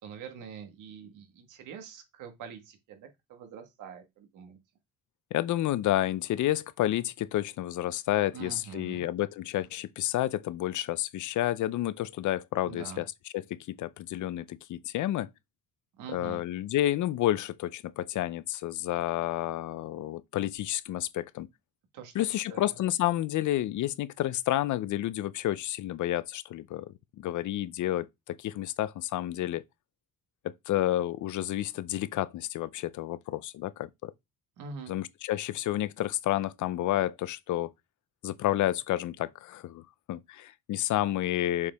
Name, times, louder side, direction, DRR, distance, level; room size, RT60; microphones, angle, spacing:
voice 1, 0.0-4.6 8.3-9.0 12.7-13.1 16.0-16.4 21.9-22.7 34.6-35.0, right 6 dB, 85° right, 1.7 m, -45 dB
voice 2, 5.3-13.0 13.3-15.3 16.1-21.5 22.1-29.6 30.7-34.1 34.9-37.7 38.2-41.7, left 14 dB, 75° left, 0.7 m, -30 dB
7.1 x 4.8 x 3.5 m
cardioid pair, 90°, 30 cm